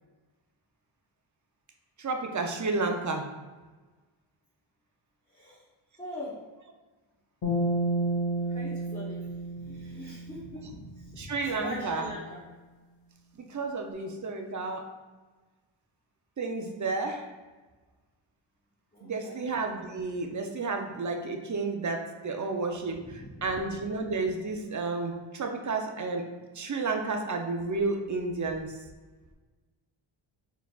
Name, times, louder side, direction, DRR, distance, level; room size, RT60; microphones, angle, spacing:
voice 1, 2.0-3.3 11.2-12.1 13.4-14.9 16.4-17.3 19.0-26.3 26.5-28.8, right 3 dB, 40° right, 3 dB, 0.5 m, -31 dB
voice 2, 5.3-5.6 6.0-6.4 8.5-12.4 18.9-19.4 23.0-23.5, left 1 dB, 15° left, -8 dB, 0.9 m, -42 dB
sound 1, 7.4-10.8, right 1 dB, 65° left, 1.3 m, -31 dB
4.3 x 4.0 x 2.3 m, 1.3 s
wide cardioid pair, 115°, 50 cm